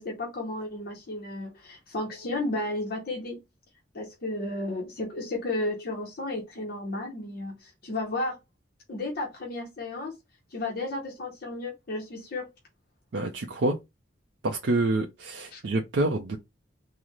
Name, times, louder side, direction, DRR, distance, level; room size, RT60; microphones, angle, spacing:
voice 1, 0.0-3.4 3.9-8.4 8.9-10.2 10.5-12.5 15.5-15.6, left 2 dB, 55° left, 0.8 m, -33 dB
voice 2, 13.1-13.8 14.4-16.4, right 2 dB, 70° right, 0.5 m, -27 dB
3.7 x 2.0 x 3.0 m
head